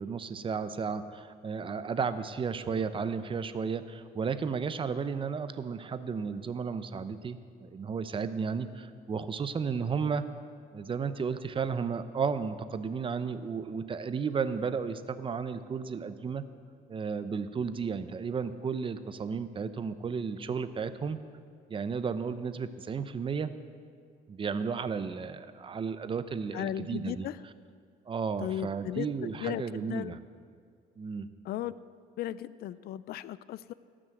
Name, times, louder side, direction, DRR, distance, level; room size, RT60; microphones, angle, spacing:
voice 1, 0.0-10.3 10.7-16.4 16.9-21.2 21.7-23.5 24.3-27.3 28.1-30.2 31.0-31.3, right 5 dB, 30° right, 12 dB, 0.7 m, -33 dB
voice 2, 26.5-27.4 28.4-30.2 31.4-31.7 32.2-33.7, left 13 dB, 65° left, 17 dB, 0.4 m, -36 dB
17.0 x 6.2 x 7.9 m, 2.2 s
cardioid pair, 110°, 17 cm